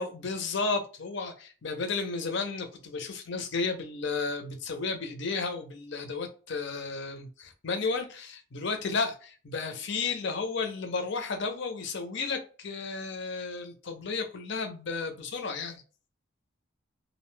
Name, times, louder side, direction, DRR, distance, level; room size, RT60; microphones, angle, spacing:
voice 1, 0.0-15.8, left 4 dB, 55° left, 5 dB, 0.5 m, -33 dB
2.5 x 2.1 x 3.1 m, 0.37 s
head